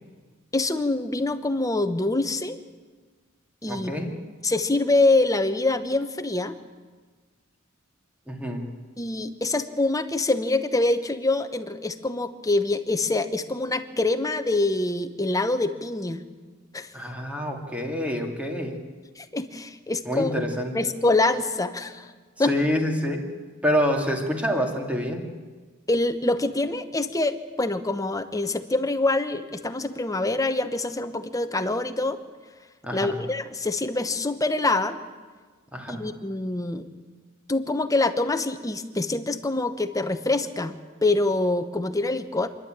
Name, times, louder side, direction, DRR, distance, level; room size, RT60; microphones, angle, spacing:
voice 1, 0.5-2.6 3.6-4.1 4.4-6.6 9.0-16.2 16.7-16.9 19.2-20.3 20.7-22.1 22.4-22.5 25.9-32.2 32.9-35.0 35.9-36.9 37.5-40.7 41.0-42.5, left 2 dB, 15° left, 9 dB, 1.0 m, -25 dB
voice 2, 3.7-4.1 8.3-8.7 16.9-18.8 20.1-20.7 22.5-23.3 23.6-25.3 32.8-33.2 35.7-36.0, equal, 5° right, 2 dB, 2.5 m, -27 dB
27.5 x 11.5 x 8.9 m, 1.4 s
head